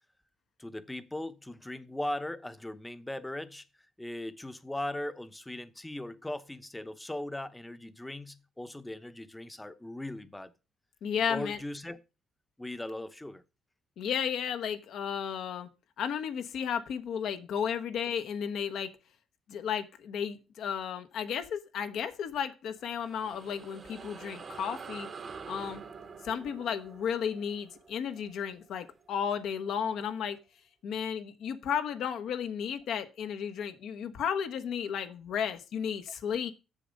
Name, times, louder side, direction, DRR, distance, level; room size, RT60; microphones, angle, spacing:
voice 1, 0.6-3.7 4.0-10.5 11.3-12.0 12.6-13.4, left 1 dB, 10° left, 0.8 m, -39 dB
voice 2, 11.0-11.6 14.0-15.7 16.0-18.9 19.5-25.1 25.5-25.8 26.2-30.4 30.8-36.5, left 8 dB, 75° left, 1.1 m, -33 dB
sound 1, 22.8-29.6, right 5 dB, 45° right, 1.0 m, -47 dB
7.2 x 7.0 x 5.2 m
cardioid pair, 90°, 0 cm